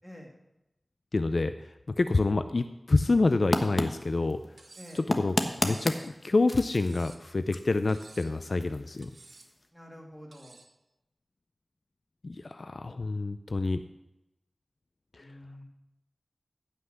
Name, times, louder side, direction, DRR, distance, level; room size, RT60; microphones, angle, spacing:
voice 1, 0.0-0.3 4.8-5.0 9.7-10.6 15.2-15.6, equal, 10° left, 0 dB, 2.7 m, -47 dB
voice 2, 1.1-1.7 2.0-4.4 5.2-5.3 5.6-9.1 12.2-13.8 15.2-15.3, left 3 dB, 60° left, 10 dB, 0.4 m, -27 dB
sound 1, 3.4-9.7, left 1 dB, 35° left, 1.2 m, -35 dB
Cutlery silverware, 4.6-5.1 5.7-6.1 6.7-7.3 7.9-8.4 9.0-9.5 10.3-10.7, right 3 dB, 85° right, 1.0 m, -53 dB
15.5 x 5.8 x 6.5 m, 0.92 s
wide cardioid pair, 75°, 0 cm